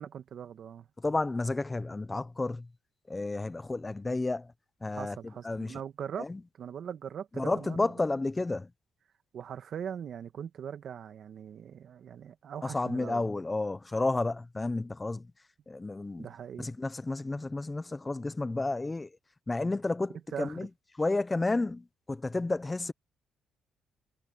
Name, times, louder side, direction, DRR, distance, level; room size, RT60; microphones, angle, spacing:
voice 1, 0.0-0.9 4.9-6.3 6.6-7.9 9.3-13.3 16.2-16.7 20.3-20.7, right 8 dB, 60° right, 1.9 m, -41 dB
voice 2, 1.0-2.7 3.1-4.5 4.8-5.8 6.2-6.4 7.4-8.7 12.6-15.3 15.7-16.3 16.6-19.1 19.5-20.7 21.0-22.9, left 2 dB, 20° left, 1.1 m, -31 dB
cardioid pair, 90°, 0 cm